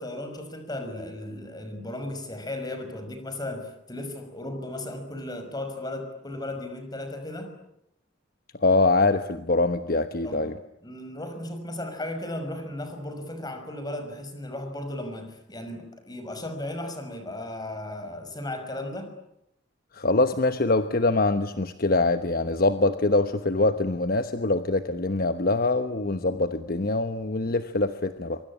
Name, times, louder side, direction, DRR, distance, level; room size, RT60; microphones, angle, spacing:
voice 1, 0.0-7.5 10.2-10.5 10.8-19.1, left 1 dB, 20° left, 7 dB, 6.0 m, -35 dB
voice 2, 8.6-10.5 20.0-28.4, left 2 dB, 50° left, 9 dB, 1.1 m, -24 dB
24.5 x 24.0 x 9.9 m, 0.79 s
head